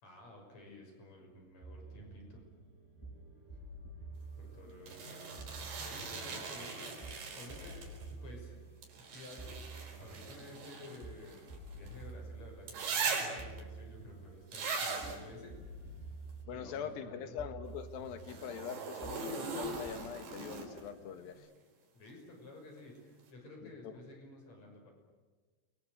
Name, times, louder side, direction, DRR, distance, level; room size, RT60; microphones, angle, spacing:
voice 1, 0.0-2.4 4.4-5.4 5.8-7.8 8.1-8.6 9.0-9.6 10.0-16.0 16.5-17.4 21.9-24.9, left 2 dB, 40° left, 2 dB, 7.0 m, -52 dB
sound 1, 1.6-21.3, right 2 dB, 5° left, 6.0 m, -50 dB
sound 2, 4.9-8.1 8.8-12.0 12.7-13.6 14.5-15.2 18.2-20.9 22.8-22.9, right 4 dB, 85° right, 6.8 m, -40 dB
voice 2, 16.5-21.5 23.6-23.9, left 8 dB, 65° left, 9 dB, 2.9 m, -43 dB
29.5 x 22.5 x 7.9 m, 1.4 s
omnidirectional pair, 5.1 m